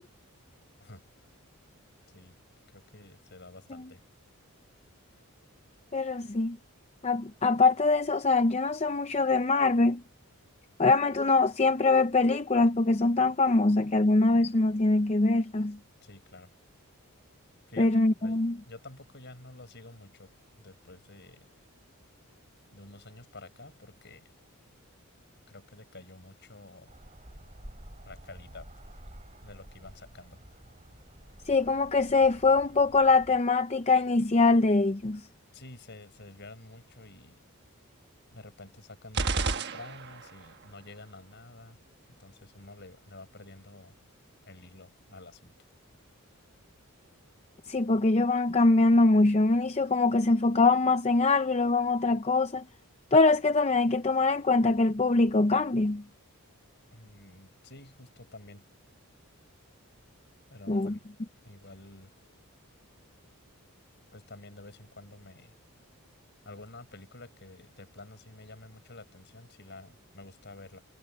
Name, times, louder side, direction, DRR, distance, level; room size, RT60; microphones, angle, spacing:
voice 1, 2.7-4.0 16.0-16.5 17.7-20.3 20.6-21.5 22.7-24.3 25.5-26.9 28.0-28.7 29.4-30.4 35.5-37.4 38.3-41.8 42.2-43.9 44.5-45.5 56.9-58.7 60.5-61.0 61.4-62.1 64.1-65.5 66.4-70.8, left 2 dB, 50° left, 6.0 m, -49 dB
voice 2, 5.9-6.6 7.0-10.0 10.8-15.8 17.8-18.6 31.5-35.2 47.7-52.6 53.1-56.0 60.7-61.0, left 3 dB, 30° left, 0.6 m, -23 dB
sound 1, 26.9-33.4, equal, 30° right, 5.9 m, -50 dB
sound 2, 39.1-40.5, right 3 dB, 50° right, 1.3 m, -30 dB
head